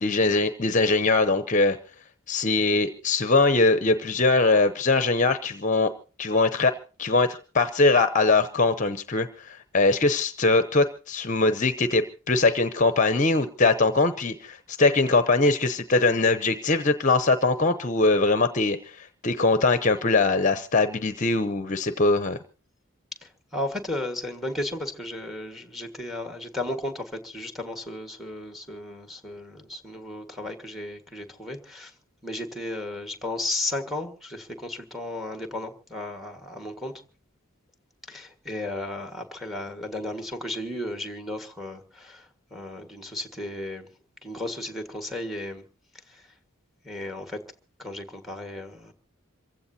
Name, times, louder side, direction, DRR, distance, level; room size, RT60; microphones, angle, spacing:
voice 1, 0.0-1.8 2.3-5.9 6.2-6.7 7.0-22.4, left 3 dB, 35° left, 0.7 m, -22 dB
voice 2, 23.2-31.9 32.2-36.9 38.1-43.9 44.2-45.6 46.1-46.3 46.8-47.4 47.8-48.9, left 1 dB, ahead, 1.6 m, -34 dB
27.0 x 15.5 x 2.8 m
head